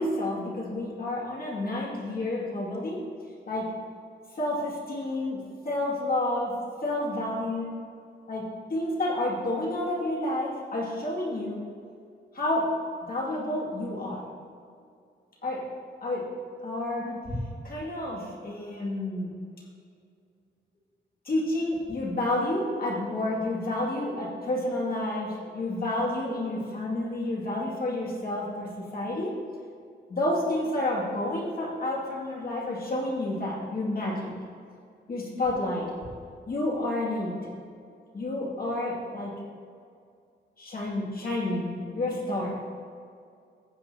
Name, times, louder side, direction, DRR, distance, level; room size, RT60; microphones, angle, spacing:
voice 1, 0.0-3.0 3.5-3.7 4.4-5.4 5.6-7.7 8.3-11.6 12.3-12.8 13.0-14.3 15.4-15.6 16.0-16.3 16.6-17.4 17.6-19.4 21.2-29.4 30.1-34.3 35.1-35.9 36.5-37.4 38.1-39.4 40.6-42.6, left 1 dB, 50° left, -4 dB, 2.5 m, -30 dB
15.0 x 8.5 x 2.9 m, 2.3 s
wide cardioid pair, 140°, 19 cm